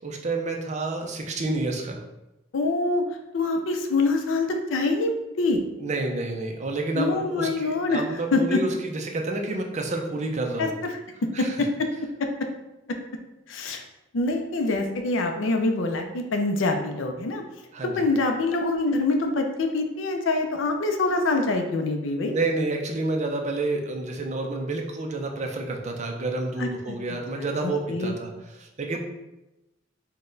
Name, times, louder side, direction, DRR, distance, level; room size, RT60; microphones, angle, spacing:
voice 1, 0.0-2.0 5.8-10.7 11.3-11.6 17.7-18.0 22.3-29.0, right 2 dB, 40° right, 2 dB, 0.5 m, -29 dB
voice 2, 2.5-3.0 3.3-5.6 6.9-8.0 8.3-8.6 10.6-10.7 11.2-11.9 13.5-13.8 14.1-17.4 18.0-22.3 26.6-27.0 27.4-28.2, left 2 dB, 90° left, 4 dB, 0.5 m, -25 dB
3.9 x 2.2 x 3.8 m, 0.97 s
head